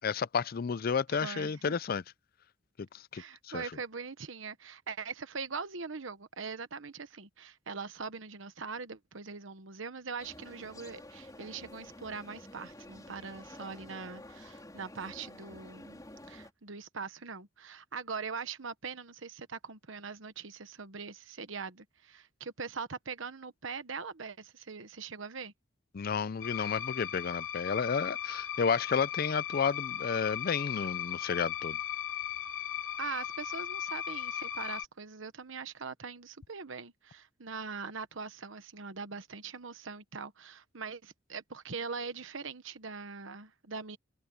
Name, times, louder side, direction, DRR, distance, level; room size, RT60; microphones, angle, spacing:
voice 1, 0.0-2.0 2.9-3.6 25.9-31.8, left 6 dB, 45° left, 0.4 m, -31 dB
voice 2, 1.1-1.8 3.1-16.0 16.3-25.5 33.0-44.0, right 5 dB, 70° right, 1.2 m, -42 dB
sound 1, 10.2-16.5, left 1 dB, 20° left, 3.8 m, -50 dB
sound 2, 26.4-34.9, left 10 dB, 75° left, 2.7 m, -37 dB
head